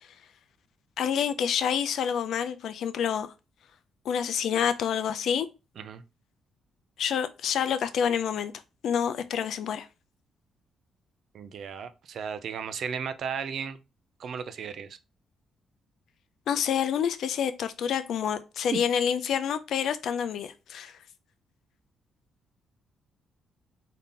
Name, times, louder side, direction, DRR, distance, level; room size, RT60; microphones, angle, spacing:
voice 1, 1.0-3.3 4.0-5.5 7.0-8.5 8.8-9.9 16.5-20.9, left 8 dB, 70° left, 0.5 m, -28 dB
voice 2, 11.3-13.8 14.2-15.0 18.7-18.8, right 6 dB, 65° right, 0.5 m, -35 dB
3.8 x 2.7 x 3.7 m
cardioid pair, 75°, 0 cm